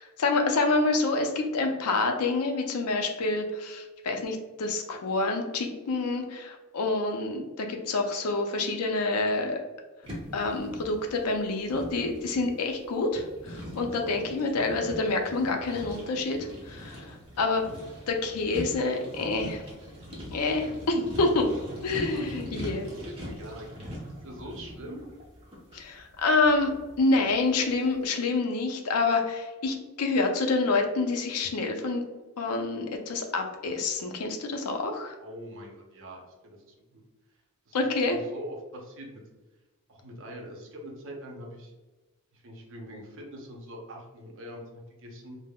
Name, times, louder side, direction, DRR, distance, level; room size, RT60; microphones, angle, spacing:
voice 1, 0.0-9.6 10.3-17.6 18.1-19.6 20.3-21.5 21.8-22.9 25.7-26.7 27.0-32.0 32.4-35.1 37.7-38.2, left 3 dB, 80° left, 4 dB, 0.5 m, -27 dB
sound 1, 10.0-27.7, equal, 25° right, 0.7 m, -42 dB
voice 2, 22.0-22.7 23.0-25.1 35.2-37.0 37.7-39.2 39.9-41.7 42.3-45.4, equal, 60° right, 1 dB, 0.6 m, -43 dB
3.5 x 2.0 x 2.2 m, 1.2 s
head